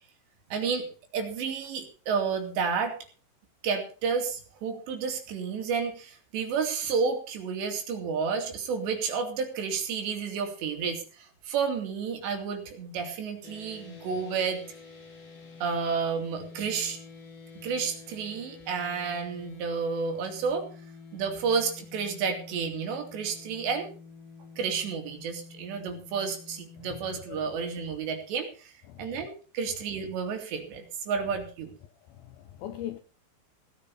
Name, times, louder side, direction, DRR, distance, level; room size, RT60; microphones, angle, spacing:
voice 1, 0.5-0.9 1.1-3.0 3.6-14.6 15.6-17.0 17.6-20.7 21.1-23.9 24.6-28.7 29.0-31.7, right 5 dB, 70° right, 4.6 m, -31 dB
sound 1, 13.4-27.2, left 4 dB, 55° left, 5.9 m, -48 dB
voice 2, 26.8-27.4 28.9-29.3 32.1-33.0, left 11 dB, 75° left, 2.3 m, -41 dB
17.5 x 9.4 x 5.4 m
omnidirectional pair, 5.3 m